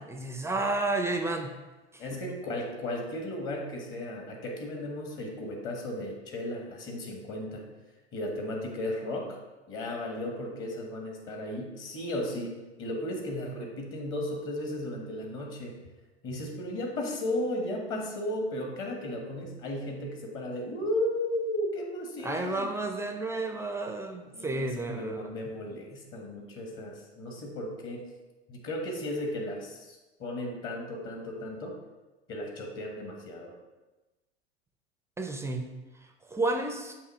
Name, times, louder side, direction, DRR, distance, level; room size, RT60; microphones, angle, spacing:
voice 1, 0.0-1.5 1.9-2.0 2.3-2.4 22.2-25.4 35.2-35.7 36.3-36.9, right 2 dB, 10° right, 4 dB, 0.5 m, -31 dB
voice 2, 2.0-7.7 8.1-9.4 9.7-15.8 16.2-22.7 24.3-28.0 28.5-31.7 32.3-33.5, left 1 dB, 40° left, 1 dB, 1.6 m, -35 dB
7.2 x 2.8 x 5.6 m, 1.1 s
hypercardioid pair, 95°, 33 cm